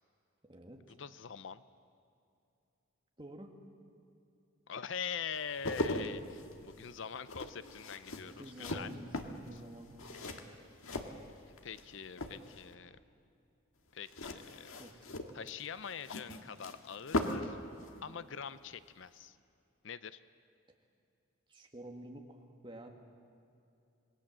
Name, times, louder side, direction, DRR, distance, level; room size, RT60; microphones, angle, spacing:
voice 1, 0.4-1.0 3.2-3.6 8.3-10.4 14.8-15.0 21.5-22.9, right 1 dB, 20° right, 2 dB, 2.0 m, -50 dB
voice 2, 1.0-1.6 4.7-8.9 9.5-9.6 11.5-13.0 13.9-14.7 15.3-17.6 18.0-19.4 19.8-20.2, left 7 dB, 60° left, 14 dB, 0.6 m, -43 dB
sound 1, 5.4-11.8 12.1-12.7 14.1-17.6 17.8-18.0, left 1 dB, 75° left, 1.7 m, -39 dB
27.0 x 20.0 x 7.5 m, 2.6 s
head